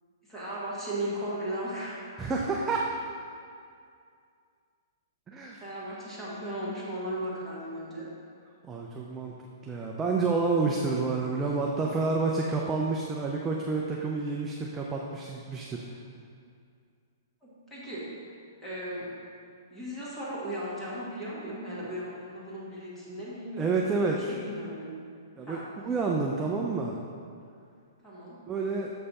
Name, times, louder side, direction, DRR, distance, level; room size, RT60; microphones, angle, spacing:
voice 1, 0.2-2.0 5.6-8.1 10.8-11.0 11.4-11.5 17.4-18.1 18.6-19.1 19.7-24.9 25.4-25.7 28.0-28.4, right 1 dB, 5° left, -9 dB, 1.5 m, -37 dB
voice 2, 2.2-2.9 5.3-5.6 8.6-9.3 9.6-15.8 23.6-24.2 25.4-27.0 28.5-28.9, right 4 dB, 10° right, -2 dB, 0.3 m, -29 dB
6.8 x 5.4 x 4.1 m, 2.3 s
hypercardioid pair, 165°, 2 cm